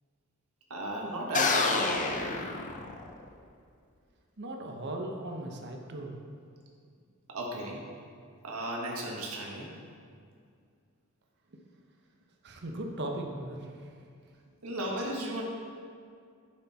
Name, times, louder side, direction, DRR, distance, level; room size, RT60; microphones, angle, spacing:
voice 1, 0.7-1.9 7.3-7.8 8.4-9.7 14.6-15.4, right 1 dB, 80° right, -1 dB, 1.5 m, -35 dB
sound 1, 1.3-3.3, left 3 dB, 35° left, 0.7 m, -28 dB
voice 2, 4.4-6.2 12.4-13.9, right 1 dB, 55° right, 2 dB, 1.0 m, -38 dB
9.3 x 6.7 x 4.2 m, 2.2 s
head